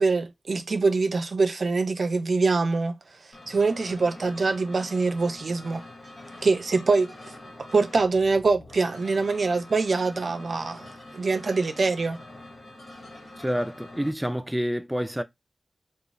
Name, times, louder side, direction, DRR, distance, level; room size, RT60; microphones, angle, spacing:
voice 1, 0.0-3.0 3.5-5.8 6.4-7.1 7.6-12.2, right 3 dB, 70° right, 0.4 m, -24 dB
sound 1, 3.3-14.1, left 1 dB, 85° left, 1.0 m, -45 dB
voice 2, 13.4-15.2, equal, 5° right, 0.4 m, -28 dB
2.5 x 2.3 x 2.9 m
cardioid pair, 50°, 0 cm